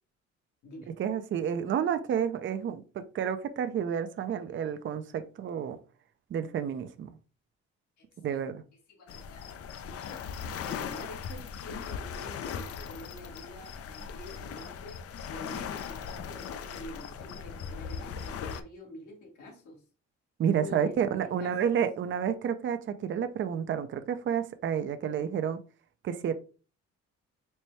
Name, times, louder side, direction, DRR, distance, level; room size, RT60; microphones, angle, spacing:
voice 1, 1.0-5.8 6.3-7.1 8.2-8.6 20.4-25.6 26.0-26.3, right 8 dB, 40° right, 0.4 m, -30 dB
voice 2, 8.0-8.4 8.9-10.2 10.6-19.8 20.5-21.8, left 1 dB, 75° left, 1.5 m, -47 dB
sound 1, 9.1-18.6, left 7 dB, 50° left, 0.4 m, -39 dB
4.2 x 2.2 x 3.1 m
cardioid pair, 90°, 30 cm